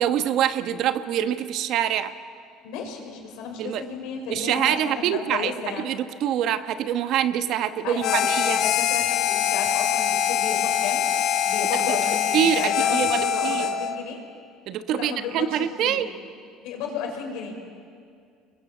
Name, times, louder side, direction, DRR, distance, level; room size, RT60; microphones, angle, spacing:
voice 1, 0.0-2.1 3.6-3.8 4.3-8.6 11.7-12.0 12.3-13.7 14.7-16.1, right 10 dB, 60° right, 10 dB, 1.1 m, -25 dB
voice 2, 2.6-5.9 7.8-11.0 11.5-14.2 14.9-16.0 16.6-17.5, left 6 dB, 75° left, 2 dB, 5.5 m, -33 dB
Harmonica, 8.0-14.0, left 9 dB, 60° left, 1.4 m, -23 dB
28.0 x 21.5 x 8.3 m, 2.2 s
cardioid pair, 120°, 0 cm